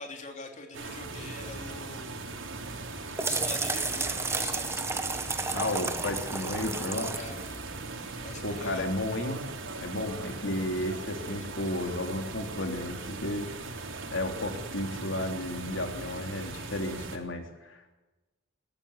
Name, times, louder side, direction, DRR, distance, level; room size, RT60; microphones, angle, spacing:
voice 1, 0.0-2.2 2.6-2.8 3.2-4.9 7.1-7.4 8.2-8.9, left 3 dB, 40° left, 3 dB, 3.4 m, -43 dB
sound 1, 0.7-17.2, right 3 dB, 90° right, 3.7 m, -39 dB
sound 2, 2.7-8.3, right 3 dB, 15° right, 1.4 m, -33 dB
voice 2, 5.5-7.2 8.4-9.4 9.8-13.8 14.1-17.9, left 1 dB, 80° left, 4 dB, 3.2 m, -33 dB
21.0 x 16.5 x 8.2 m, 1.1 s
head